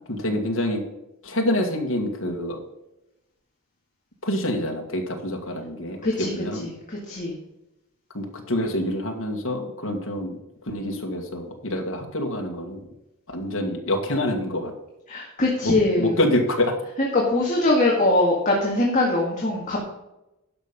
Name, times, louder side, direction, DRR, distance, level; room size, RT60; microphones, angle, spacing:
voice 1, 0.1-0.8 1.2-2.6 4.2-6.7 8.1-10.4 10.6-12.8 13.3-14.7 15.6-16.8, left 1 dB, 65° left, 1 dB, 1.9 m, -26 dB
voice 2, 6.0-6.3 6.6-7.3 15.1-16.1 17.0-19.8, left 2 dB, 35° left, -2 dB, 1.8 m, -22 dB
11.5 x 5.6 x 5.2 m, 0.92 s
head